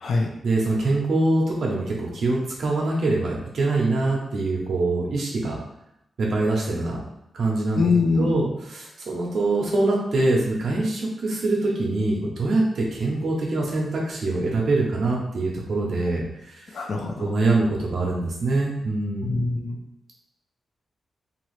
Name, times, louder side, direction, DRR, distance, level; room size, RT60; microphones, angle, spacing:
voice 1, 0.4-5.6 6.2-7.0 7.3-7.9 8.2-16.2 17.2-19.4, right 2 dB, 65° right, -2 dB, 0.6 m, -24 dB
voice 2, 7.8-8.4 16.7-17.3 19.2-19.8, left 4 dB, 60° left, 2 dB, 0.5 m, -23 dB
2.9 x 2.4 x 3.1 m, 0.83 s
wide cardioid pair, 125°, 0 cm